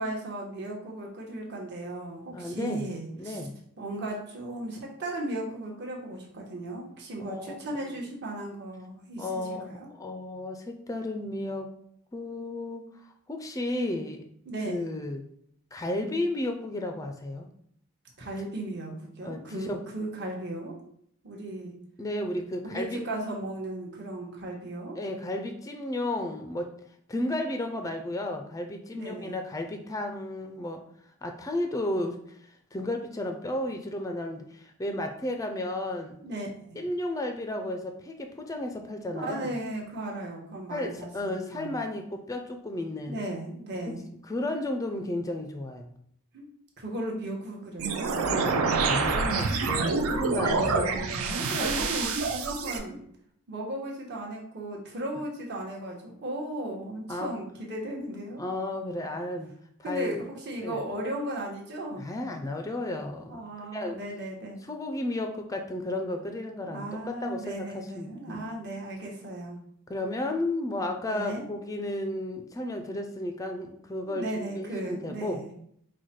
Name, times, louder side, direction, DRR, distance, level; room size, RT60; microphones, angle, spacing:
voice 1, 0.0-3.4 3.8-9.9 14.5-14.9 18.2-20.7 21.2-21.7 22.7-25.0 28.9-29.4 36.2-36.8 39.1-41.7 43.0-44.0 46.3-46.5 46.8-48.2 50.0-53.0 53.5-58.4 59.8-62.1 63.3-64.6 66.6-69.6 71.1-71.4 74.0-75.5, right 1 dB, 50° right, -2 dB, 1.0 m, -36 dB
voice 2, 2.3-2.9 3.2-3.6 7.2-7.6 9.2-9.7 10.0-11.7 12.1-12.9 13.3-14.3 14.7-15.3 15.7-17.5 19.2-19.8 22.0-23.0 25.0-26.7 27.1-30.8 31.2-32.2 32.7-36.2 36.8-39.6 40.7-43.2 43.9-44.0 44.3-45.9 48.2-50.8 51.5-51.7 57.1-57.3 58.4-59.6 59.9-60.2 60.6-60.8 62.0-63.4 63.7-64.0 64.7-68.4 69.9-75.4, left 1 dB, 15° left, 5 dB, 0.3 m, -33 dB
sound 1, 47.8-52.8, right 4 dB, 75° right, 0.5 m, -27 dB
4.6 x 2.2 x 4.2 m, 0.69 s
head